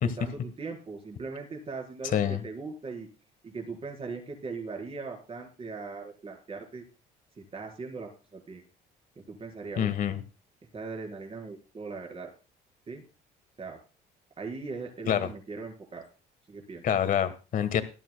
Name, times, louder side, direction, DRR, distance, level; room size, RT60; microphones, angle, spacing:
voice 1, 0.0-3.1 3.4-6.8 7.4-8.6 9.3-9.9 10.7-12.3 12.9-13.0 13.6-13.8 14.4-16.0 16.5-16.8, right 4 dB, 35° right, 2 dB, 4.2 m, -39 dB
voice 2, 9.8-10.2 15.1-15.3 16.8-17.8, left 9 dB, 55° left, 11 dB, 1.4 m, -26 dB
18.0 x 12.5 x 2.2 m, 0.33 s
cardioid pair, 110°, 17 cm